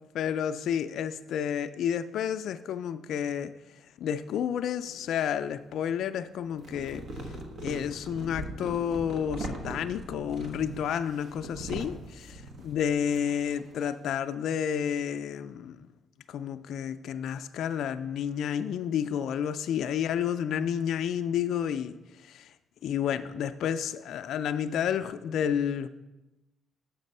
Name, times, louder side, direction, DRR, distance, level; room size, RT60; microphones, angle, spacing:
voice 1, 0.1-3.5 4.0-7.0 7.6-15.8 16.3-21.9 22.3-22.5 22.8-25.9, left 8 dB, 75° left, 10 dB, 0.3 m, -30 dB
sound 1, 4.8-5.7 6.4-14.2, right 1 dB, 60° right, 1.2 m, -41 dB
6.5 x 6.0 x 5.3 m, 1.0 s
cardioid pair, 90°, 0 cm